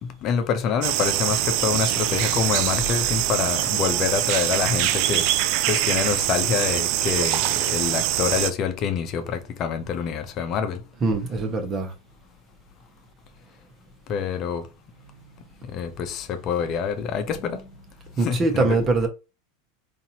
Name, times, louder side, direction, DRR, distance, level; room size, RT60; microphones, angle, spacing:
voice 1, 0.0-5.3 5.7-10.8 14.1-14.7 15.7-17.6 18.2-18.8, left 7 dB, 45° left, 0.7 m, -26 dB
sound 1, 0.8-8.5, right 14 dB, 55° right, 0.3 m, -23 dB
voice 2, 11.0-11.9 15.1-15.2 18.2-19.1, right 3 dB, 30° right, 1.1 m, -23 dB
4.0 x 2.7 x 2.8 m
hypercardioid pair, 90°, 0 cm